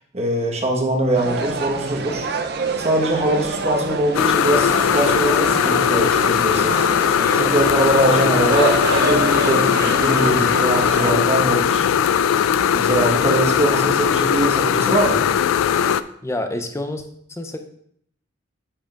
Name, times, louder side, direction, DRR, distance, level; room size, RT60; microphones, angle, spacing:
voice 1, 0.1-2.3 2.8-6.8 7.3-11.9 12.7-15.2, right 1 dB, 30° right, 1 dB, 1.2 m, -22 dB
sound 1, 1.1-11.1, right 3 dB, 50° right, 0.5 m, -27 dB
sound 2, 4.1-16.0, left 8 dB, 80° left, 0.3 m, -19 dB
voice 2, 16.2-17.0 17.3-17.6, left 1 dB, 15° left, 6 dB, 0.5 m, -27 dB
8.9 x 7.4 x 2.4 m, 0.67 s
head